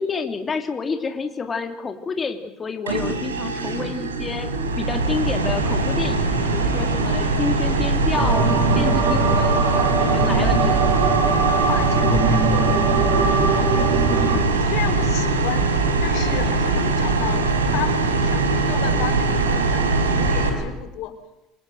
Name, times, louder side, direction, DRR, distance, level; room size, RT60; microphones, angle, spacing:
voice 1, 0.0-4.5 4.8-8.5 8.7-10.9, left 5 dB, 25° left, 5 dB, 3.1 m, -29 dB
sound 1, 2.9-20.5, right 3 dB, 85° right, 4.9 m, -21 dB
sound 2, 8.1-14.4, right 4 dB, 60° right, 5.9 m, -21 dB
voice 2, 11.6-14.0 14.3-15.7 16.0-21.2, left 11 dB, 60° left, 10 dB, 3.7 m, -33 dB
28.0 x 26.0 x 8.0 m, 0.93 s
hypercardioid pair, 70°, 0 cm